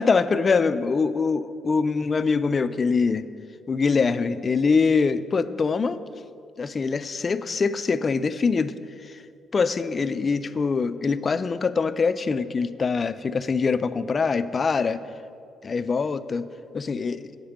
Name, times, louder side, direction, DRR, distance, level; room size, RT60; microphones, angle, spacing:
voice 1, 0.0-3.3 3.7-6.0 6.6-9.2 9.5-15.0 15.6-16.5 16.7-17.3, left 4 dB, 40° left, 13 dB, 0.3 m, -24 dB
8.0 x 5.1 x 7.1 m, 2.4 s
cardioid pair, 90°, 0 cm